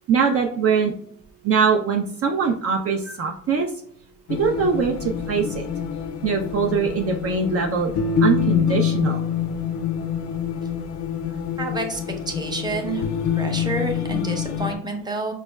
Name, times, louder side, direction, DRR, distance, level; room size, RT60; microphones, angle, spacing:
voice 1, 0.1-0.9 1.4-3.7 4.3-5.7 6.2-7.9 8.2-9.2, right 5 dB, 50° right, 2 dB, 0.5 m, -22 dB
sound 1, 4.3-14.7, left 7 dB, 75° left, 0.5 m, -26 dB
voice 2, 11.6-12.0 12.3-13.0 13.4-15.3, right 2 dB, 15° right, 3 dB, 0.7 m, -28 dB
5.0 x 2.2 x 2.2 m, 0.63 s
cardioid pair, 90°, 30 cm